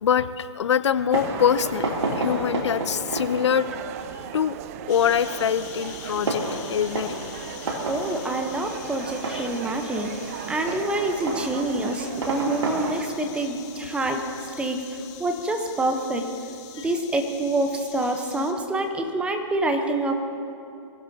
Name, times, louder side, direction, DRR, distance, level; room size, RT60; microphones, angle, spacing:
voice 1, 0.0-3.7 4.3-4.6 4.9-6.4 6.7-7.2 9.3-9.5 16.8-16.9, left 8 dB, 70° left, 14 dB, 0.6 m, -24 dB
Fireworks, 0.9-15.1, right 2 dB, 80° right, 2.9 m, -33 dB
sound 1, 1.1-13.0, right 10 dB, 30° right, 0.5 m, -38 dB
sound 2, 4.9-18.5, left 10 dB, 35° left, 1.5 m, -44 dB
voice 2, 7.9-10.1 10.5-14.2 14.6-16.3 16.8-20.2, right 2 dB, 5° right, 5 dB, 0.9 m, -26 dB
24.5 x 15.5 x 2.8 m, 2.7 s
hypercardioid pair, 145°, 15 cm